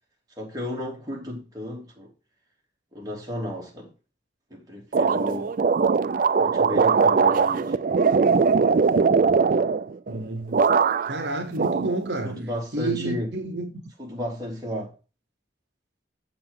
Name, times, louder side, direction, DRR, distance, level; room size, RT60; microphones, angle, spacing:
voice 1, 0.4-2.1 2.9-3.9 4.5-5.5 6.4-7.8 11.8-11.9 12.2-13.3 14.0-14.9, left 1 dB, 20° right, 2.7 m, -33 dB
sound 1, 4.9-10.2 10.5-11.2 11.6-12.5, right 5 dB, 50° right, 0.4 m, -21 dB
voice 2, 10.1-10.6 11.0-12.4 12.7-13.7, right 2 dB, 65° right, 1.0 m, -29 dB
7.6 x 6.9 x 3.7 m
head